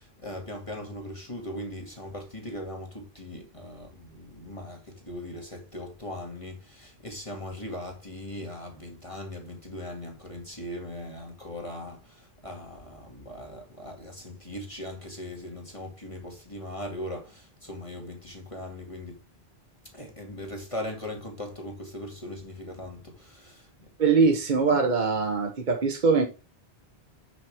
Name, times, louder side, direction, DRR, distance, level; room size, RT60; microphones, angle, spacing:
voice 1, 0.0-19.2 19.9-23.9, left 1 dB, 30° left, 2.3 m, -39 dB
voice 2, 24.0-26.3, right 4 dB, 50° right, 1.2 m, -22 dB
9.7 x 6.3 x 3.5 m
omnidirectional pair, 1.1 m